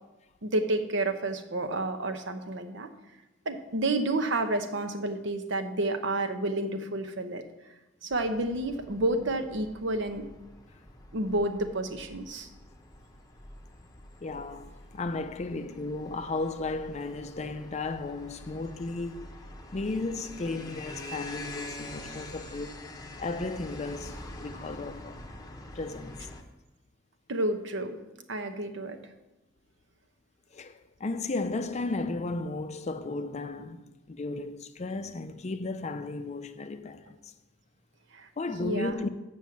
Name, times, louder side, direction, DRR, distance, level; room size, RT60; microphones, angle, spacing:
voice 1, 0.4-2.9 3.4-7.4 8.0-10.3 11.1-12.5 27.3-28.0 28.3-29.0 38.1-38.3 38.6-39.0, right 2 dB, 65° right, 0.9 m, -30 dB
sound 1, 8.1-26.4, left 1 dB, 20° left, 0.9 m, -46 dB
voice 2, 14.2-19.3 19.7-22.9 23.2-25.2 25.7-26.2 30.5-37.3 38.4-39.1, left 3 dB, 35° left, 0.5 m, -34 dB
7.4 x 6.3 x 7.2 m
head